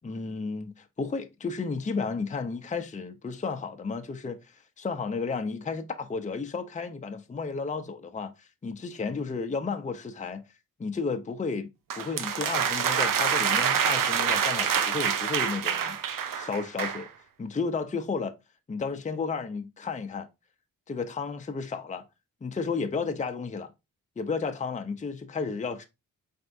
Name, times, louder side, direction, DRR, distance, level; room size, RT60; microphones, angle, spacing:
voice 1, 0.0-10.4 10.8-11.7 12.0-16.0 16.3-17.1 17.4-18.3 18.7-20.3 20.9-22.0 22.4-23.7 24.2-25.8, left 4 dB, 20° left, 0.6 m, -33 dB
sound 1, 11.9-17.1, right 8 dB, 75° right, 0.6 m, -26 dB
4.4 x 3.4 x 2.6 m
cardioid pair, 60°, 33 cm